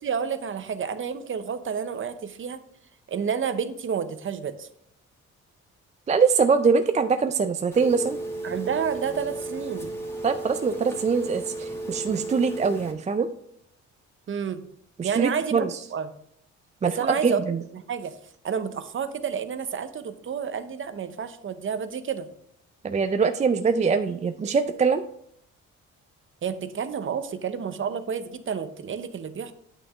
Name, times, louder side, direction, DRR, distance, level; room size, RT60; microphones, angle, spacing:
voice 1, 0.0-2.6 3.1-4.7 8.4-9.9 14.3-14.6 15.0-16.1 16.8-17.4 17.7-18.1 18.4-22.3 26.4-29.5, right 7 dB, 40° right, 11 dB, 0.8 m, -30 dB
voice 2, 6.1-8.2 10.2-13.3 15.0-15.8 16.8-17.6 22.8-25.0, right 5 dB, 25° right, 9 dB, 0.4 m, -23 dB
Telephone, 7.7-12.9, right 2 dB, 10° left, 1.9 m, -34 dB
8.7 x 6.0 x 3.5 m, 0.71 s
cardioid pair, 90°, 30 cm